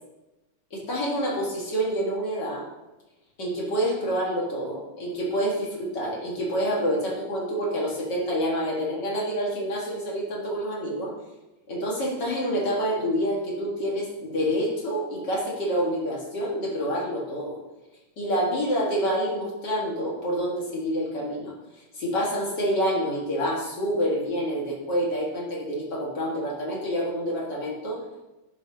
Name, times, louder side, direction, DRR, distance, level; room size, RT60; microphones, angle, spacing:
voice 1, 0.7-2.6 3.4-11.1 11.7-17.6 18.2-21.5 21.9-28.0, equal, 50° left, -3 dB, 2.4 m, -27 dB
10.0 x 6.2 x 2.9 m, 1.0 s
omnidirectional pair, 2.4 m